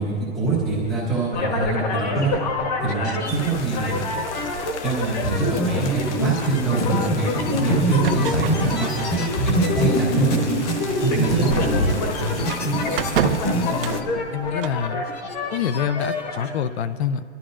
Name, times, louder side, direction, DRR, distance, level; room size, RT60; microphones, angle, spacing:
voice 1, 0.0-2.3 2.8-4.0 4.8-7.3 7.6-8.9 9.4-10.4 11.0-12.0, right 3 dB, ahead, -10 dB, 0.4 m, -24 dB
sound 1, 1.3-16.5, left 1 dB, 35° left, 1.2 m, -25 dB
sound 2, 3.2-14.0, left 5 dB, 90° left, 0.9 m, -37 dB
sound 3, 8.0-14.9, right 8 dB, 55° right, 0.5 m, -32 dB
voice 2, 13.6-15.0 15.5-17.2, left 8 dB, 70° left, 14 dB, 0.5 m, -27 dB
22.0 x 12.5 x 2.5 m, 2.2 s
hypercardioid pair, 165°, 33 cm